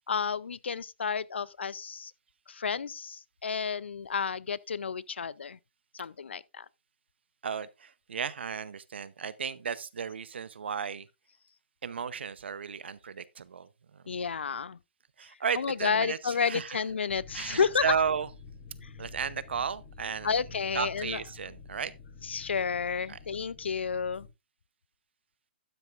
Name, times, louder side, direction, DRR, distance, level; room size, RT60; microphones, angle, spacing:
voice 1, 0.1-2.1 2.5-5.6 6.0-6.6 14.1-14.8 15.5-17.9 20.2-21.2 22.2-24.3, left 6 dB, 85° left, 0.5 m, -31 dB
voice 2, 7.4-11.1 11.8-14.0 15.2-16.8 17.3-18.3 19.0-20.4 20.7-21.9 23.1-23.2, right 6 dB, 75° right, 0.8 m, -34 dB
sound 1, 17.1-24.3, left 5 dB, 35° left, 4.0 m, -49 dB
12.5 x 9.3 x 2.5 m
hypercardioid pair, 135°, 6 cm